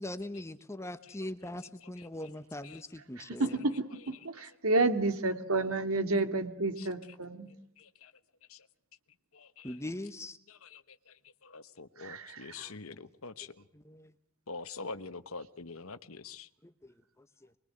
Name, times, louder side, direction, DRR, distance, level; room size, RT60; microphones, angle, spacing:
voice 1, 0.0-3.6 9.6-10.4 12.6-13.0 13.7-14.1 16.6-17.5, left 1 dB, 15° left, 10 dB, 1.1 m, -42 dB
voice 2, 3.2-3.8 4.1-7.5 12.0-12.7, right 2 dB, 80° right, 7 dB, 2.5 m, -30 dB
voice 3, 7.8-8.1 8.5-8.7 9.3-9.8 10.5-13.6 14.5-16.5, left 4 dB, 75° left, 12 dB, 1.1 m, -45 dB
25.5 x 22.0 x 8.0 m, 0.73 s
head